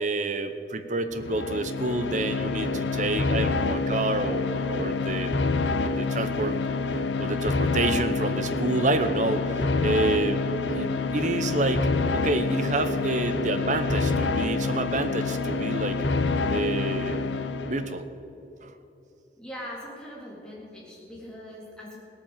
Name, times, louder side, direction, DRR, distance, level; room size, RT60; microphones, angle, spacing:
voice 1, 0.0-5.3 5.8-6.6 7.2-10.4 10.7-16.0 16.5-17.2 17.7-18.0 18.6-18.8, right 2 dB, 45° right, 9 dB, 0.9 m, -28 dB
sound 1, 1.1-18.0, left 3 dB, 85° left, 0.7 m, -27 dB
voice 2, 19.4-22.0, left 1 dB, 5° left, -5 dB, 3.8 m, -41 dB
17.5 x 9.0 x 7.4 m, 3.0 s
head